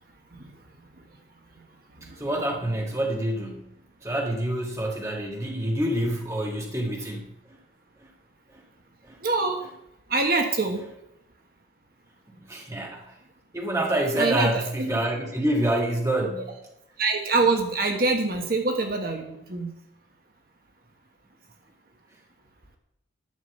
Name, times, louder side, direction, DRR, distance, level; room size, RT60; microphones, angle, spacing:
voice 1, 2.2-3.7 4.0-7.3 8.5-8.6 9.0-9.2 12.5-13.1 13.5-16.5, right 1 dB, 15° right, 0 dB, 1.6 m, -27 dB
voice 2, 9.2-9.6 10.1-10.8 14.2-14.5 14.8-14.9 17.0-19.7, right 3 dB, 50° right, 3 dB, 1.4 m, -25 dB
11.0 x 6.0 x 7.9 m, 0.82 s
head